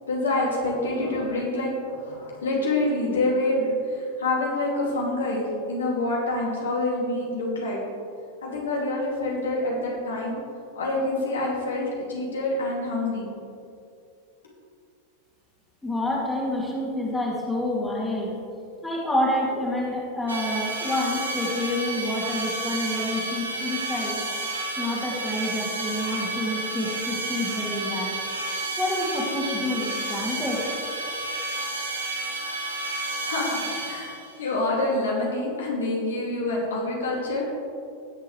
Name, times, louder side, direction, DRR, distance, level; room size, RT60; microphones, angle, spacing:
voice 1, 0.1-7.8 8.4-10.4 10.7-13.3 33.2-34.1 34.4-37.5, left 2 dB, 65° left, -3 dB, 2.6 m, -26 dB
voice 2, 15.8-18.4 18.8-24.2 24.8-28.1 28.8-30.6, left 1 dB, 5° left, -4 dB, 2.5 m, -28 dB
sound 1, 20.3-34.4, right 2 dB, 75° right, 1.4 m, -31 dB
19.0 x 7.4 x 3.3 m, 2.5 s
figure-of-eight pair, 90°, 0 cm